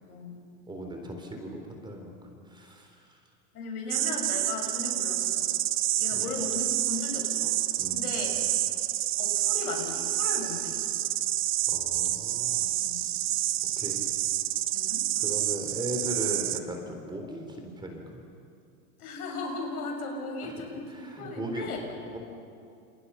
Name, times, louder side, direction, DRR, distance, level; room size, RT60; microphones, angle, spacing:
voice 1, 0.0-0.4 3.5-5.5 6.0-7.5 7.9-8.3 9.2-10.8 12.8-13.1 14.7-15.1 19.0-21.8, left 3 dB, 80° left, 2 dB, 7.3 m, -37 dB
voice 2, 0.7-3.2 6.1-6.5 7.8-8.4 11.7-12.8 13.8-14.0 15.2-18.1 20.4-22.2, right 1 dB, 10° right, 3 dB, 4.0 m, -38 dB
sound 1, 3.9-16.6, right 13 dB, 30° right, 0.9 m, -28 dB
29.0 x 28.0 x 5.9 m, 2.4 s
supercardioid pair, 140°, 44 cm